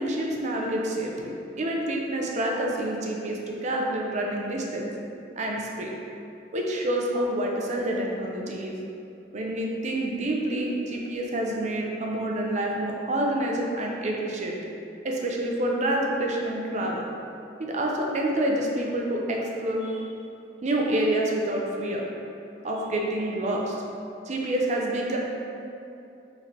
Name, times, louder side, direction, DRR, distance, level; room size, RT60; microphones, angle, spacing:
voice 1, 0.0-4.9 5.4-5.9 6.5-8.8 9.3-14.6 15.0-17.1 17.7-20.0 20.6-22.0 22.6-23.8 24.3-25.2, right 1 dB, 40° right, -1 dB, 0.4 m, -28 dB
4.0 x 3.2 x 2.7 m, 2.7 s
head